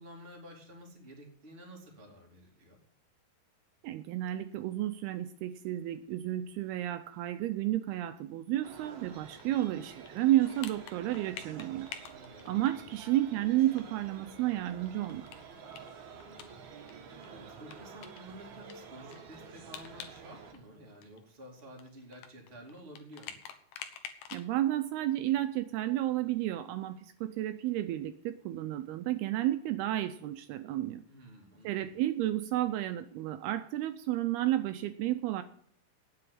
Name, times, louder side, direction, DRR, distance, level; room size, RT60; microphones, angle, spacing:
voice 1, 0.0-2.8 12.0-12.9 16.1-16.6 17.3-23.4 31.1-32.0, right 1 dB, 15° right, 0 dB, 2.1 m, -51 dB
voice 2, 3.8-11.9 12.5-15.3 24.3-31.0 31.6-35.4, right 14 dB, 80° right, 10 dB, 2.5 m, -31 dB
sound 1, 8.6-20.5, right 5 dB, 55° right, 2.3 m, -50 dB
sound 2, 9.4-13.2 13.5-13.6 13.8-13.9 14.2-16.9 17.2-17.3 17.7-20.2 20.5-24.5, left 8 dB, 85° left, 3.3 m, -48 dB
9.4 x 7.8 x 9.5 m, 0.63 s
omnidirectional pair, 4.7 m